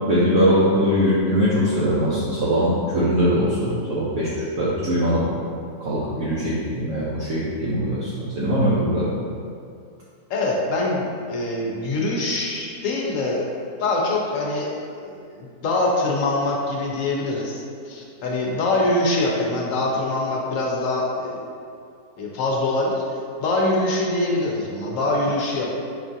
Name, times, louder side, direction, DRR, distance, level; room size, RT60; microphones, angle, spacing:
voice 1, 0.1-5.3 5.8-9.1, equal, 70° right, -8 dB, 1.0 m, -21 dB
voice 2, 10.3-13.4 13.8-14.7 15.0-21.5 22.2-25.7, left 2 dB, 65° left, -2 dB, 0.9 m, -24 dB
5.7 x 2.4 x 2.6 m, 2.3 s
omnidirectional pair, 1.6 m